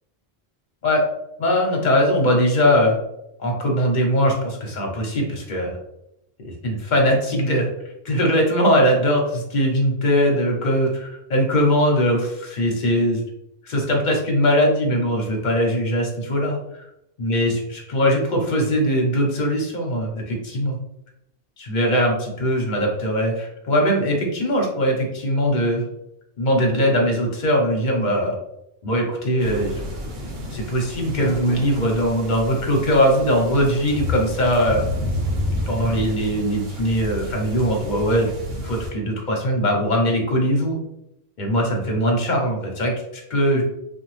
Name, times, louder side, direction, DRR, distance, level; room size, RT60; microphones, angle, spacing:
voice 1, 1.4-3.0 3.4-5.8 6.6-7.7 8.1-13.2 13.6-16.5 17.2-20.8 21.6-25.8 26.4-28.4 28.8-29.8 30.5-34.9 35.7-38.3 38.6-40.8 41.4-43.6, equal, 50° left, 0 dB, 0.8 m, -20 dB
sound 1, 29.4-38.9, left 1 dB, 70° right, 0.9 m, -30 dB
2.8 x 2.3 x 3.1 m, 0.81 s
omnidirectional pair, 1.1 m